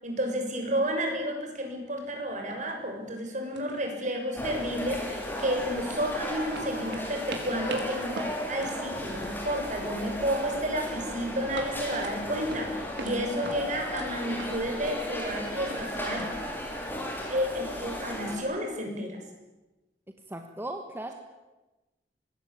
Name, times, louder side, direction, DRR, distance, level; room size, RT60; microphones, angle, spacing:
voice 1, 0.0-8.1 8.5-16.3 17.3-19.2, equal, 45° right, 3 dB, 6.7 m, -31 dB
sound 1, 2.0-2.1 2.5-2.8 3.1-3.3 3.5-4.4 4.6-6.1 6.5-10.0 10.3-10.7 11.1-13.2 13.4-16.2, right 2 dB, 80° right, 4.9 m, -43 dB
sound 2, 4.3-18.4, left 1 dB, 10° left, 6.1 m, -35 dB
voice 2, 20.3-21.1, right 1 dB, 15° right, 4 dB, 1.7 m, -37 dB
25.5 x 20.0 x 8.8 m, 1.1 s
head